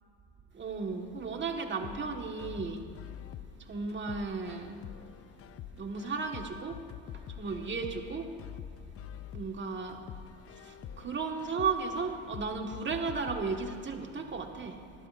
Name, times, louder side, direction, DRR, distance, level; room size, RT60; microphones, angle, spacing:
voice 1, 0.5-2.8 3.6-4.8 5.7-6.8 7.1-8.3 9.3-10.1 10.5-14.8, right 4 dB, 35° right, 3 dB, 1.5 m, -35 dB
sound 1, 1.8-13.8, left 10 dB, 45° left, 0.5 m, -46 dB
20.0 x 11.5 x 2.5 m, 2.4 s
supercardioid pair, 80°, 33 cm